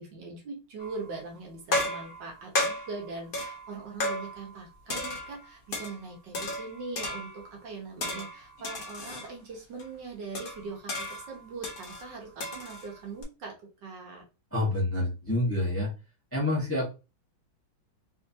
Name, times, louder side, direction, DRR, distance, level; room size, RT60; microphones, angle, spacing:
voice 1, 0.0-13.5 13.8-14.2, right 3 dB, 60° right, 0 dB, 1.6 m, -41 dB
sound 1, 0.8-1.2 1.7-4.6 4.9-6.0 6.3-7.5 8.0-9.3 9.8-9.9 10.3-13.2, left 1 dB, 65° left, 0.5 m, -34 dB
voice 2, 14.5-15.9 16.3-16.9, left 1 dB, 10° left, -4 dB, 0.9 m, -27 dB
3.6 x 3.5 x 2.7 m, 0.30 s
omnidirectional pair, 2.3 m